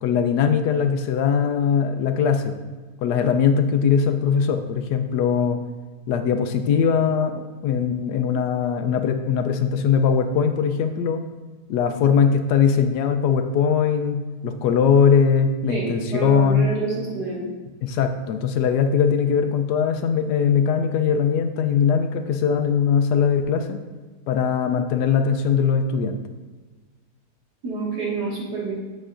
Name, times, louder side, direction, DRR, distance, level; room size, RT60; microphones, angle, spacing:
voice 1, 0.0-2.6 3.0-5.6 6.1-11.2 11.7-16.7 17.8-23.8 24.3-26.2, left 6 dB, 80° left, 7 dB, 1.2 m, -20 dB
voice 2, 15.7-17.4 27.6-28.7, right 3 dB, 80° right, -5 dB, 2.4 m, -28 dB
7.5 x 7.1 x 2.5 m, 1.3 s
omnidirectional pair, 1.8 m